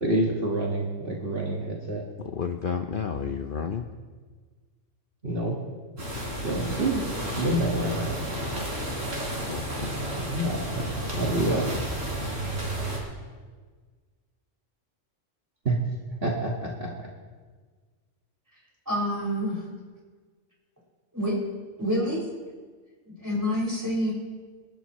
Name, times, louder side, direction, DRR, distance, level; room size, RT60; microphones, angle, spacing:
voice 1, 0.0-2.0 5.2-5.6 6.4-7.0 7.4-8.2 10.2-10.8 11.1-11.8 15.7-15.8 16.2-16.9, right 1 dB, 50° right, -2 dB, 1.9 m, -27 dB
voice 2, 2.2-3.9 9.5-9.9, left 6 dB, 50° left, 5 dB, 0.8 m, -31 dB
sound 1, 6.0-13.0, right 1 dB, 90° right, 4.1 m, -32 dB
voice 3, 18.9-19.6 21.1-21.3 21.8-22.2 23.2-24.1, equal, 15° right, -5 dB, 6.0 m, -27 dB
27.5 x 12.0 x 3.1 m, 1.5 s
omnidirectional pair, 1.3 m